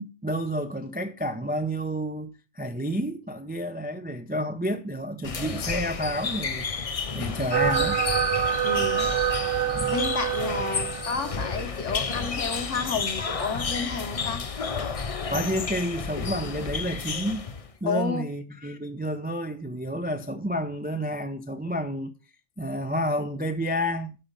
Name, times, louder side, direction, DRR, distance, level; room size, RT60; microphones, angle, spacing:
voice 1, 0.0-8.0 9.7-10.0 15.3-17.5 17.8-22.1 22.6-24.2, equal, 10° right, 0.4 m, -30 dB
sound 1, 5.2-17.7, left 5 dB, 35° left, 0.6 m, -31 dB
sound 2, 7.5-11.5, right 10 dB, 65° right, 1.1 m, -26 dB
voice 2, 8.6-9.1 9.9-14.4 17.8-18.2, left 4 dB, 65° left, 1.6 m, -31 dB
12.0 x 4.3 x 5.3 m
omnidirectional pair, 1.4 m